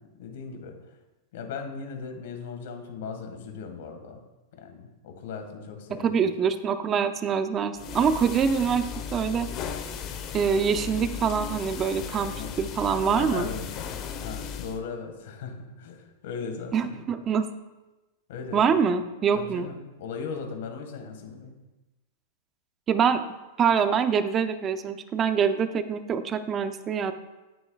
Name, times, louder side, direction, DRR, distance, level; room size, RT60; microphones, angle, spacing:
voice 1, 0.2-0.8 1.3-4.2 4.5-6.2 12.3-12.5 13.2-14.0 14.2-16.9 18.3-18.7 19.3-21.6, left 5 dB, 65° left, 5 dB, 1.6 m, -38 dB
voice 2, 6.0-9.5 10.3-13.5 16.7-17.4 18.5-19.7 22.9-23.2 23.6-27.1, right 6 dB, 30° right, 10 dB, 0.5 m, -25 dB
sound 1, 7.7-14.8, left 7 dB, 40° left, 0.9 m, -36 dB
8.8 x 7.8 x 2.3 m, 1.1 s
hypercardioid pair, 120°, 0 cm